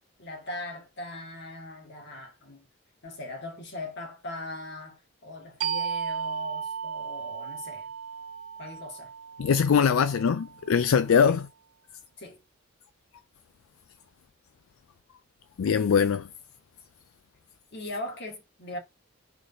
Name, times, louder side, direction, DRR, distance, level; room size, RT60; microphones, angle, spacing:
voice 1, 0.2-2.7 3.0-7.9 8.6-9.1 11.2-11.4 12.2-12.4 17.7-18.8, left 2 dB, 55° left, 2.2 m, -40 dB
sound 1, 5.6-10.9, right 7 dB, 85° right, 0.5 m, -35 dB
voice 2, 9.4-11.4 15.6-16.3, left 6 dB, 75° left, 0.4 m, -22 dB
4.7 x 4.0 x 5.3 m
head